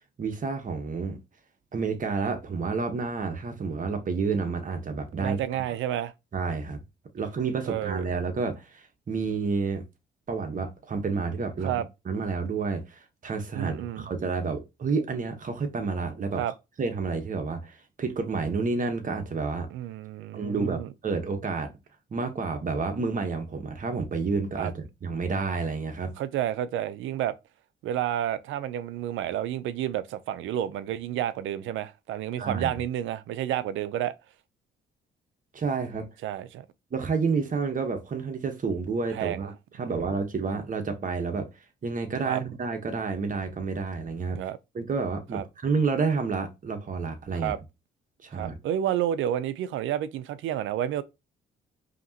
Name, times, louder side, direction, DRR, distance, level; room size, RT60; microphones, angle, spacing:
voice 1, 0.2-1.2 1.7-5.4 6.3-6.8 7.1-9.8 10.3-11.7 12.0-16.4 16.8-19.7 20.3-21.7 22.1-26.1 32.4-32.7 35.5-36.1 36.9-44.4 44.7-47.5 48.2-48.6, right 4 dB, 40° right, 1.2 m, -30 dB
voice 2, 5.2-6.1 7.7-8.0 11.6-11.9 13.5-14.1 16.4-16.5 19.7-20.9 24.6-24.7 26.2-27.4 27.8-34.1 36.2-36.7 39.1-39.5 42.3-42.4 44.3-44.6 45.3-45.4 47.4-47.6 48.3-51.0, right 11 dB, 80° right, 0.5 m, -30 dB
5.1 x 2.9 x 2.8 m
cardioid pair, 90°, 20 cm